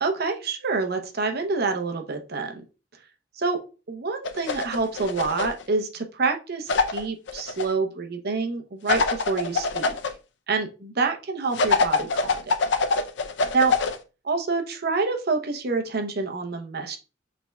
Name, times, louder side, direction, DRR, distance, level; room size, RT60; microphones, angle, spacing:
voice 1, 0.0-2.6 3.4-3.6 3.9-10.0 10.5-12.5 13.5-13.8 14.2-17.0, right 4 dB, 60° right, 5 dB, 0.8 m, -27 dB
sound 1, 4.2-5.6 6.7-7.6 8.9-10.1 11.5-14.0, left 4 dB, 70° left, 0.5 m, -24 dB
6.6 x 3.5 x 2.3 m, 0.32 s
head